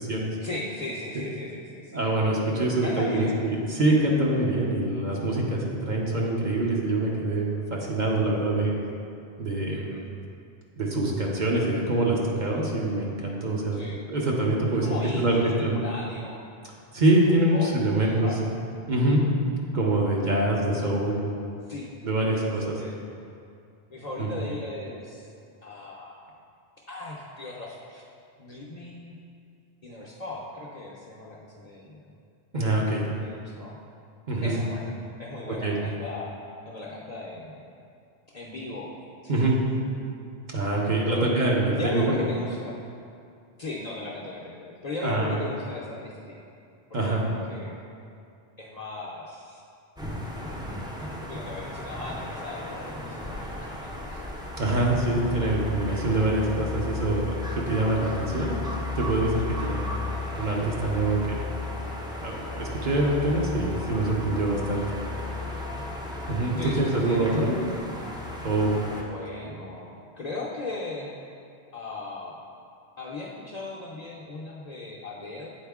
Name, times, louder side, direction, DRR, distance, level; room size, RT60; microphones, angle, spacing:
voice 1, 0.4-2.0 2.8-3.4 9.7-10.1 13.7-14.0 14.8-16.5 17.5-18.4 21.7-21.9 22.3-23.0 23.9-25.3 25.6-26.2 26.9-28.0 28.4-29.2 29.8-32.1 33.0-33.8 34.4-34.9 35.2-36.3 36.7-37.6 38.3-38.9 39.2-39.6 41.0-41.3 41.7-42.8 43.6-46.4 46.9-47.8 48.6-49.6 51.3-54.2 59.6-59.8 65.6-65.9 66.6-67.5 69.1-71.1 71.7-72.4 73.0-75.5, left 2 dB, 45° left, -4 dB, 0.6 m, -37 dB
voice 2, 1.9-8.7 9.4-9.8 10.8-13.8 14.1-14.9 15.2-15.4 15.6-15.8 16.9-18.4 18.9-19.3 19.7-21.2 22.0-22.8 24.2-24.4 32.5-33.1 34.3-34.6 35.6-35.8 39.3-39.5 40.5-42.1 45.0-45.3 46.9-47.2 54.6-58.6 58.9-59.9 60.4-61.4 62.2-64.8 66.3-67.5 68.4-69.0, right 2 dB, 50° right, -3 dB, 0.8 m, -25 dB
sound 1, 50.0-69.0, left 2 dB, 5° right, 0.4 m, -34 dB
8.1 x 4.2 x 3.5 m, 2.5 s
omnidirectional pair, 1.1 m